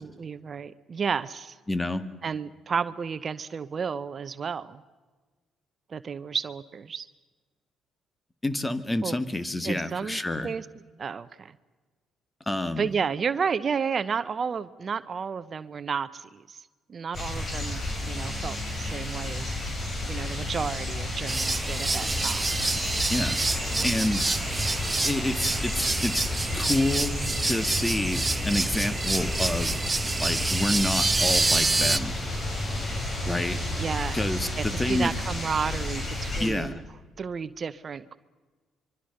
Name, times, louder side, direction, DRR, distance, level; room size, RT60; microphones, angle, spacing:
voice 1, 0.0-1.6 2.2-4.8 5.9-7.1 9.0-9.2 9.6-10.6 11.0-11.5 12.8-16.6 16.9-19.6 20.1-22.6 33.7-36.8 37.2-38.2, right 6 dB, 45° right, 14 dB, 0.8 m, -32 dB
voice 2, 1.7-2.0 8.4-10.5 12.5-12.9 23.1-23.4 23.8-24.3 25.0-29.9 30.2-32.2 33.3-33.6 34.1-35.1 36.4-36.8, left 1 dB, 15° left, 12 dB, 1.8 m, -28 dB
sound 1, 17.1-36.5, left 1 dB, 40° left, 6.4 m, -32 dB
sound 2, 21.3-32.0, right 3 dB, 20° right, 1.0 m, -27 dB
25.0 x 23.5 x 6.7 m, 1.3 s
supercardioid pair, 60°, 0 cm